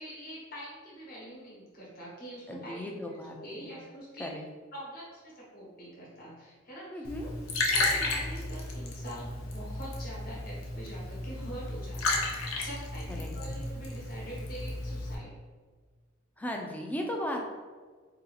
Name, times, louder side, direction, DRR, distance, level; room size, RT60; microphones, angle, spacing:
voice 1, 0.0-4.4 4.7-15.3, right 1 dB, 45° left, -5 dB, 1.0 m, -45 dB
voice 2, 2.5-3.8 4.2-4.4 6.9-7.3 13.2-13.3 16.4-17.4, left 1 dB, 10° left, 1 dB, 0.3 m, -36 dB
Liquid, 7.0-15.1, left 2 dB, 85° left, 0.6 m, -33 dB
2.7 x 2.4 x 3.9 m, 1.5 s
head